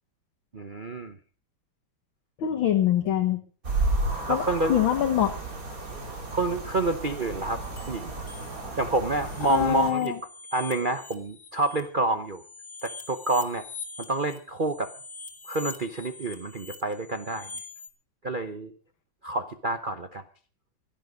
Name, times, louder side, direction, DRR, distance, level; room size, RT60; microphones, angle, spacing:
voice 1, 0.5-1.2 4.3-4.7 5.9-6.0 6.3-7.6 7.9-8.1 8.8-10.1 10.5-12.4 12.8-13.6 14.0-14.9 15.5-17.5 18.2-18.7 19.2-20.2, right 2 dB, 65° right, 7 dB, 0.5 m, -28 dB
voice 2, 2.4-3.4 4.3-5.3 9.5-10.2, left 10 dB, 70° left, 3 dB, 2.1 m, -24 dB
sound 1, 3.6-9.9, right 2 dB, 40° right, 3.4 m, -32 dB
sound 2, 7.6-8.7 9.1-11.8 12.3-17.9, left 4 dB, 50° left, 3.1 m, -44 dB
17.0 x 12.5 x 5.2 m, 0.40 s
omnidirectional pair, 2.3 m